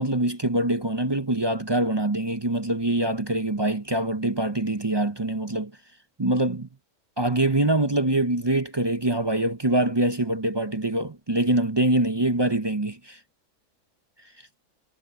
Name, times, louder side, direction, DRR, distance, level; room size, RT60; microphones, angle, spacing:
voice 1, 0.0-5.7 6.2-6.7 7.2-13.2, right 1 dB, 25° right, 0.6 m, -24 dB
omnidirectional pair, 1.6 m